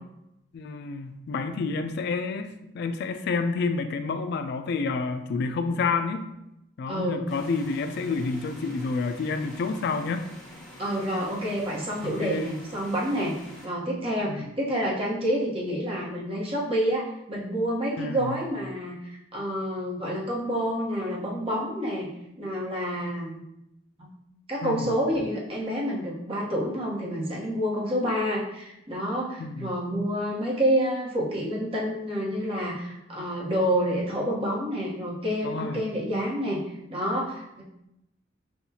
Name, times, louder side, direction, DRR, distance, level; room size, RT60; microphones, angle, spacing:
voice 1, 0.5-6.3 6.8-10.2 12.0-12.5 14.3-14.5 18.0-18.4 24.6-25.0 29.4-29.7 35.4-35.9, left 4 dB, 60° left, 8 dB, 0.3 m, -29 dB
voice 2, 6.9-7.2 10.8-13.3 13.6-22.1 22.4-23.4 24.0-24.1 24.5-36.6 36.9-37.6, equal, 30° right, -5 dB, 1.0 m, -28 dB
sound 1, 7.3-13.7, left 1 dB, ahead, 1.1 m, -47 dB
5.7 x 2.3 x 2.7 m, 0.85 s
head